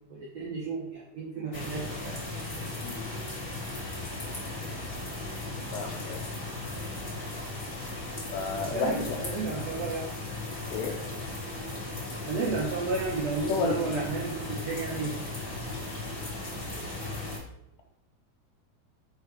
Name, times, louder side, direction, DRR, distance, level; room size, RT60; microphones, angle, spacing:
voice 1, 0.1-2.2 7.6-7.7 8.5-10.1 12.1-15.2 16.8-16.9, right 4 dB, 85° right, -3 dB, 1.5 m, -33 dB
sound 1, 1.5-17.4, left 2 dB, 35° left, 1.3 m, -37 dB
voice 2, 5.7-6.3 8.3-9.2 10.7-11.0 13.5-14.0, left 5 dB, 75° left, 3 dB, 2.5 m, -32 dB
6.5 x 4.7 x 4.9 m, 0.79 s
omnidirectional pair, 4.7 m